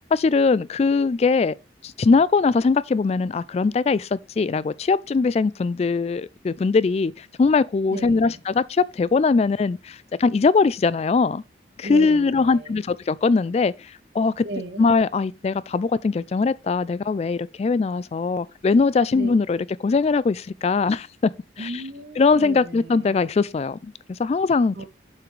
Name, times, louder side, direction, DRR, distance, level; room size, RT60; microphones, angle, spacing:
voice 1, 0.1-1.5 1.8-11.4 11.8-14.4 14.8-21.3 21.6-21.7 22.2-24.8, left 4 dB, 35° left, 0.3 m, -21 dB
voice 2, 7.9-8.4 11.8-12.8 14.4-14.9 19.1-19.6 21.6-23.2 24.7-24.8, right 1 dB, 75° right, 2.0 m, -36 dB
7.5 x 5.8 x 3.2 m
head